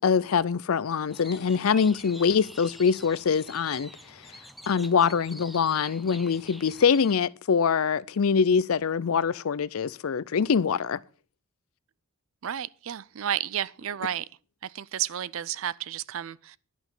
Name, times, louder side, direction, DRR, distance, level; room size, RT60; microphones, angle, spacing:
voice 1, 0.0-3.9 4.7-11.0, left 6 dB, 70° left, 0.5 m, -24 dB
sound 1, 1.1-7.2, equal, ahead, 0.5 m, -46 dB
voice 2, 12.4-14.3 14.6-16.6, right 10 dB, 65° right, 0.4 m, -32 dB
11.0 x 6.1 x 7.0 m
head